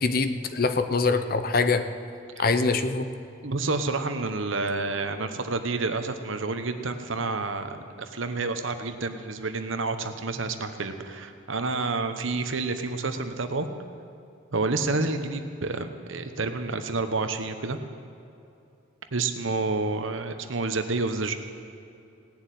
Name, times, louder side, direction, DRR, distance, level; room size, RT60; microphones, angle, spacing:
voice 1, 0.0-1.9 2.4-3.1, left 4 dB, 45° left, 10 dB, 0.7 m, -24 dB
voice 2, 3.4-13.7 14.5-17.8 19.1-21.3, right 3 dB, 75° right, 8 dB, 1.0 m, -29 dB
17.5 x 7.1 x 9.2 m, 2.7 s
head